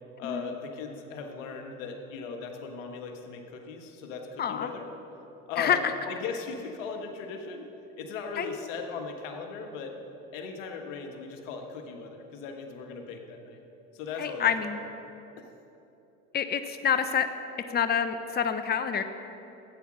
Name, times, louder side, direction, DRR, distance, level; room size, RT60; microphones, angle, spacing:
voice 1, 0.2-4.9 5.5-7.7 8.0-9.9 10.3-13.6 13.9-14.7, left 5 dB, 90° left, 4 dB, 1.5 m, -38 dB
voice 2, 4.4-4.7 5.6-5.9 8.4-8.6 14.2-14.8 16.3-17.3 17.7-19.0, left 8 dB, 25° left, 9 dB, 0.7 m, -27 dB
13.0 x 8.7 x 6.2 m, 3.0 s
supercardioid pair, 80°, 38 cm